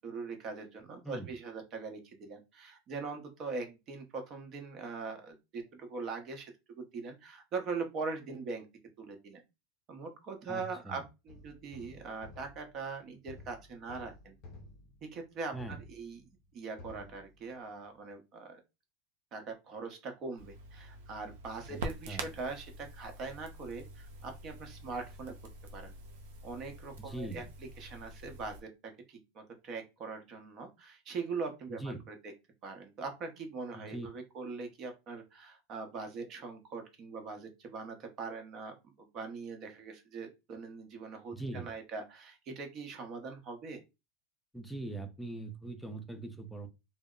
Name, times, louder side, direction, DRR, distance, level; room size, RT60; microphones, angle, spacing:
voice 1, 0.0-8.7 9.0-9.4 9.9-14.4 15.0-16.2 16.5-18.6 19.3-25.3 25.7-25.9 26.4-27.4 27.8-32.1 32.6-43.8, right 4 dB, 40° right, 0.8 m, -42 dB
voice 2, 10.5-11.0 15.5-15.8 21.7-21.8 22.1-22.3 27.0-27.5 31.7-32.0 33.7-34.1 41.3-41.7 44.5-46.7, right 2 dB, ahead, 0.5 m, -41 dB
sound 1, 11.3-16.5 16.8-17.9, left 2 dB, 50° left, 0.6 m, -53 dB
Crackle, 20.4-28.6, right 2 dB, 90° right, 0.5 m, -46 dB
2.0 x 2.0 x 3.7 m
supercardioid pair, 130°, 0 cm